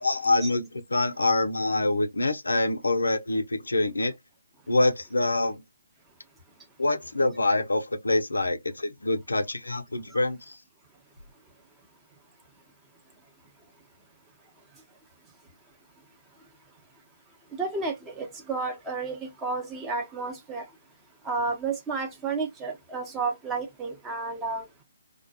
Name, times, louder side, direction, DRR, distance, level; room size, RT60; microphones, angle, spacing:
voice 1, 0.0-4.1 4.7-5.6 6.8-10.6, left 2 dB, 80° left, 0.5 m, -25 dB
voice 2, 17.5-20.6 21.2-24.6, right 4 dB, 15° right, 0.7 m, -31 dB
2.3 x 2.1 x 2.7 m
figure-of-eight pair, 140°, 0 cm